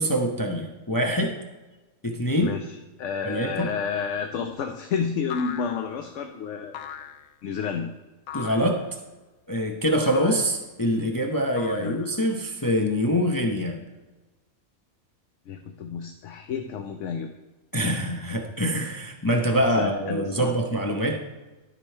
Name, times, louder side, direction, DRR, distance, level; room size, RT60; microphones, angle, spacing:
voice 1, 0.0-1.4 2.0-2.5 3.2-3.7 8.3-8.8 9.5-13.8 17.7-21.2, equal, 20° left, 2 dB, 0.6 m, -24 dB
voice 2, 2.4-6.8 7.4-7.9 11.8-12.0 15.5-17.3 19.6-20.5, left 6 dB, 65° left, 5 dB, 1.0 m, -30 dB
sound 1, 3.6-4.0 5.3-6.1 6.7-7.3 8.3-8.8 10.1-10.6 11.6-12.3, left 9 dB, 85° left, 1.1 m, -39 dB
12.5 x 5.2 x 4.4 m, 1.2 s
omnidirectional pair, 1.5 m